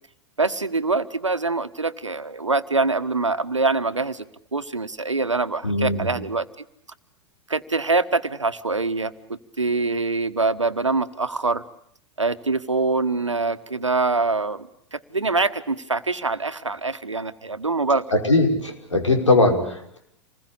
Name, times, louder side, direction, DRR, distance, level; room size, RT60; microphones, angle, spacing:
voice 1, 0.4-4.3 4.5-6.5 7.5-11.6 12.2-18.0, right 3 dB, 90° right, 11 dB, 1.4 m, -24 dB
voice 2, 5.6-6.1 18.1-20.0, left 2 dB, 85° left, 4 dB, 5.4 m, -20 dB
28.0 x 21.0 x 8.3 m, 0.68 s
figure-of-eight pair, 100°, 15 cm